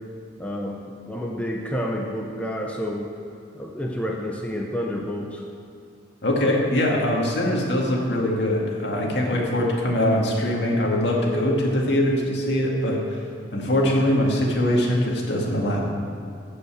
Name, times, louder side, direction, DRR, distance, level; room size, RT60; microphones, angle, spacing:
voice 1, 0.4-3.1 3.5-5.5, equal, 5° left, 0 dB, 0.7 m, -29 dB
voice 2, 6.2-13.2 13.5-15.8, left 1 dB, 65° left, -1 dB, 2.1 m, -22 dB
15.0 x 5.6 x 7.6 m, 2.3 s
head